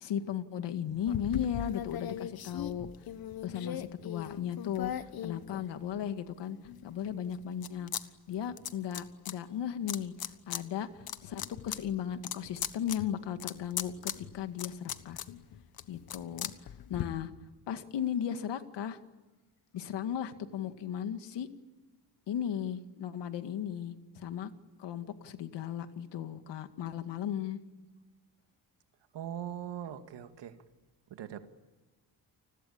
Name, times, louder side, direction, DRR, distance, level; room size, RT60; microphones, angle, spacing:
voice 1, 0.0-2.9 3.4-4.9 5.2-6.6 6.8-7.9 8.3-15.2 15.9-16.5 16.9-17.3 17.7-19.0 19.7-21.5 22.3-24.5 24.8-27.6, left 9 dB, 85° left, 9 dB, 2.1 m, -36 dB
sound 1, 1.1-6.1 6.6-8.0 8.3-9.3 9.9-10.6 11.0-17.0, left 10 dB, 60° left, 1.4 m, -39 dB
voice 2, 29.1-30.5 31.1-31.5, right 10 dB, 85° right, 7 dB, 2.2 m, -40 dB
30.0 x 21.0 x 8.7 m, 1.2 s
cardioid pair, 150°, 41 cm